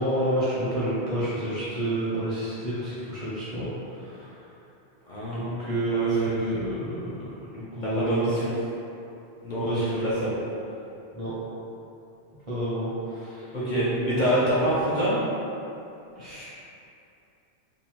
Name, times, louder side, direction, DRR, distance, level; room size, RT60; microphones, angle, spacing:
voice 1, 0.0-4.3 5.3-7.1 7.6-8.3 9.6-9.8 11.1-11.3 12.5-13.5 16.2-16.5, right 1 dB, 40° right, -11 dB, 0.5 m, -29 dB
voice 2, 5.1-6.4 7.8-8.5 9.4-10.3 13.5-15.2, equal, 55° left, -9 dB, 0.6 m, -26 dB
2.6 x 2.1 x 2.8 m, 2.7 s
omnidirectional pair, 1.1 m